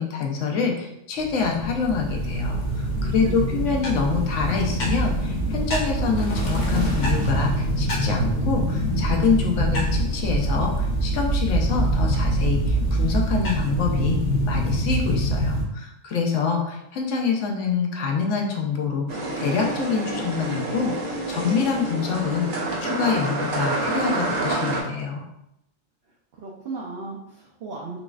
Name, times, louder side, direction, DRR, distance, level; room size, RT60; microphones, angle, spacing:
voice 1, 0.0-14.2 14.5-25.2, left 5 dB, 70° left, 1 dB, 1.0 m, -26 dB
sound 1, 1.2-15.6, right 1 dB, 45° left, 0.7 m, -24 dB
voice 2, 3.0-3.7 26.4-28.0, right 4 dB, 60° right, -4 dB, 0.7 m, -35 dB
sound 2, 19.1-24.8, right 2 dB, 75° right, 1.2 m, -28 dB
4.0 x 3.0 x 2.4 m, 0.82 s
omnidirectional pair, 1.4 m